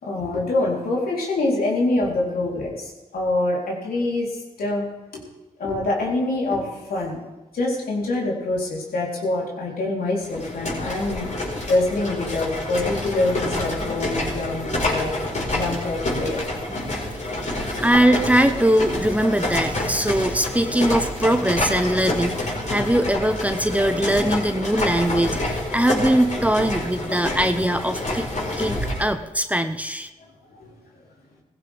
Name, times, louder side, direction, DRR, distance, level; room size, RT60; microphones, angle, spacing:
voice 1, 0.0-4.9 5.1-5.2 5.6-7.2 7.5-15.1 15.5-16.4 30.5-30.7, left 2 dB, 75° left, -3 dB, 3.9 m, -25 dB
sound 1, 10.2-29.1, left 1 dB, 50° left, 5.0 m, -28 dB
voice 2, 17.8-28.3 28.6-30.1, right 1 dB, 10° right, 9 dB, 1.0 m, -21 dB
17.0 x 15.5 x 3.6 m, 1.1 s
supercardioid pair, 40°, 16 cm